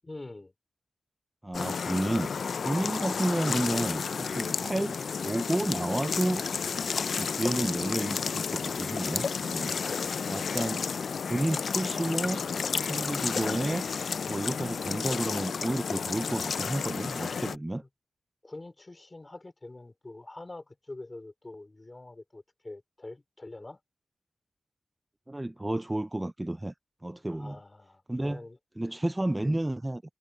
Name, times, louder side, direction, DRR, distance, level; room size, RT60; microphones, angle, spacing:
voice 1, 0.0-0.5 17.8-17.9 18.4-23.8 27.3-28.6, left 2 dB, 20° left, 3.0 m, -45 dB
voice 2, 1.4-2.3 2.6-4.9 5.2-6.4 7.1-9.7 10.3-10.8 11.3-12.4 12.9-13.8 14.3-17.8 25.3-26.7 27.0-27.6 28.1-28.4 28.8-30.0, right 1 dB, 10° right, 0.4 m, -31 dB
sound 1, 1.5-17.6, left 6 dB, 65° left, 0.4 m, -32 dB
wide cardioid pair, 170°, 0 cm